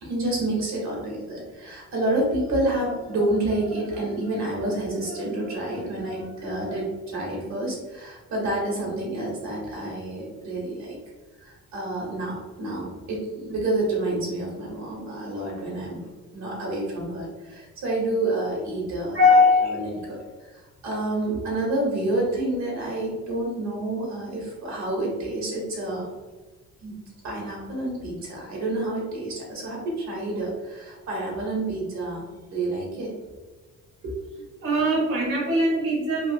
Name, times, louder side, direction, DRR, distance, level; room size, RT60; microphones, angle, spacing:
voice 1, 0.0-11.0 11.4-19.2 19.7-26.1 26.8-27.0 27.2-33.1 34.0-34.2, right 2 dB, 65° right, -2 dB, 1.2 m, -29 dB
voice 2, 19.1-20.0 34.6-36.3, left 2 dB, 45° right, -4 dB, 1.0 m, -20 dB
3.1 x 2.4 x 2.6 m, 1.2 s
cardioid pair, 90°, 30 cm